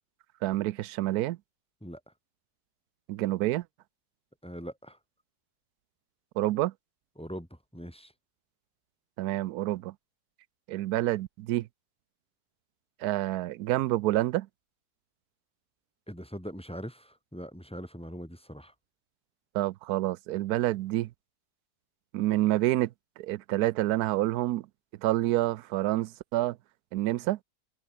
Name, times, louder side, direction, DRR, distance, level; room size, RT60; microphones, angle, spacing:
voice 1, 0.4-1.4 3.1-3.6 6.4-6.7 9.2-9.9 10.7-11.7 13.0-14.5 19.5-21.1 22.1-24.7 25.0-26.6 26.9-27.4, right 16 dB, 75° right, 1.0 m, -28 dB
voice 2, 4.4-5.0 7.2-7.5 7.7-8.1 16.1-18.7, equal, 5° left, 6.3 m, -41 dB
omnidirectional pair, 1.7 m